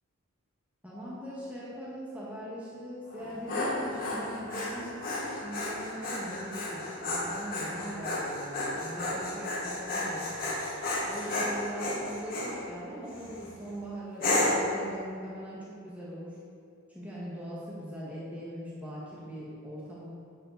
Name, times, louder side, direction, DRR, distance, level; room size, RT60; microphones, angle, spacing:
voice 1, 0.8-10.6 11.1-16.3 16.9-20.0, equal, 5° right, -7 dB, 1.6 m, -41 dB
Dog, 3.1-12.5 13.1-13.5 14.2-14.7, left 2 dB, 40° left, 2.2 m, -32 dB
11.0 x 7.7 x 4.1 m, 2.5 s
head